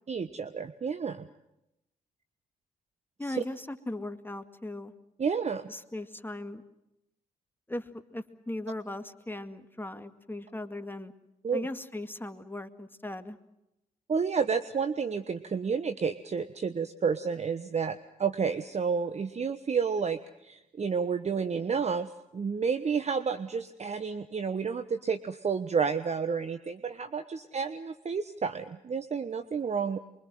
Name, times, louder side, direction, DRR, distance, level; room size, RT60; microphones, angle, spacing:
voice 1, 0.1-1.3 3.3-3.4 5.2-5.7 11.4-11.7 14.1-30.0, right 6 dB, 40° right, 10 dB, 1.2 m, -30 dB
voice 2, 3.2-4.9 5.7-6.6 7.7-11.1 11.5-13.4, left 1 dB, 10° left, 9 dB, 2.1 m, -38 dB
24.5 x 23.0 x 7.7 m, 0.87 s
hypercardioid pair, 45°, 17 cm